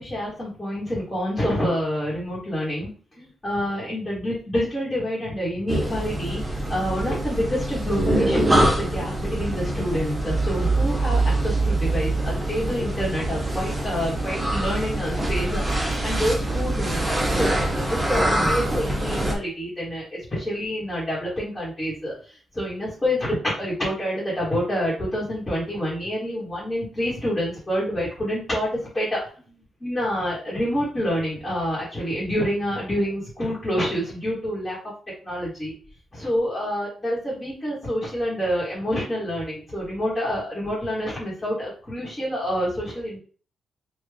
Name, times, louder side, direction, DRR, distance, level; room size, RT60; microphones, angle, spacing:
voice 1, 0.0-2.9 3.2-29.4 29.8-34.8 35.2-35.7 36.1-43.2, equal, 15° left, -7 dB, 1.2 m, -27 dB
sound 1, 5.7-19.3, right 1 dB, 15° right, 0.6 m, -24 dB
3.4 x 2.3 x 3.3 m, 0.41 s
wide cardioid pair, 160°, 0 cm